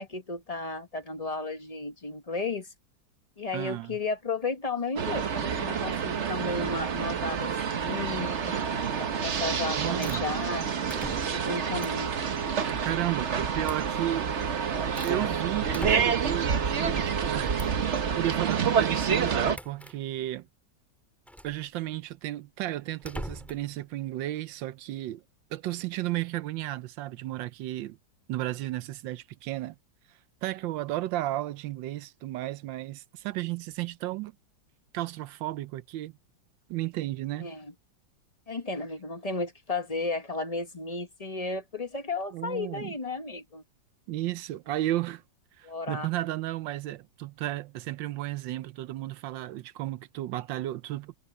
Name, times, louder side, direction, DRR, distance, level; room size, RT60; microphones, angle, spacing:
voice 1, 0.0-2.7 3.4-10.7 11.3-12.1 37.4-37.7 38.5-43.6 45.6-46.1, left 3 dB, 25° left, 0.9 m, -34 dB
voice 2, 3.5-4.0 9.8-10.3 10.9-11.1 12.7-14.3 15.0-17.6 18.2-20.5 21.4-25.2 25.5-28.0 28.3-29.8 30.4-34.3 34.9-36.1 36.7-37.5 42.3-42.9 44.1-45.2 45.6-51.2, right 15 dB, 80° right, 1.3 m, -33 dB
sound 1, 5.0-19.6, right 7 dB, 45° right, 1.1 m, -28 dB
sound 2, 9.3-9.6 10.0-10.2 10.9-11.5 11.8-12.1 13.6-13.9 14.4-15.2 15.7-16.4 17.6-17.8 19.5-20.0 21.3-21.6 23.0-23.7, equal, ahead, 5.0 m, -40 dB
omnidirectional pair, 2.0 m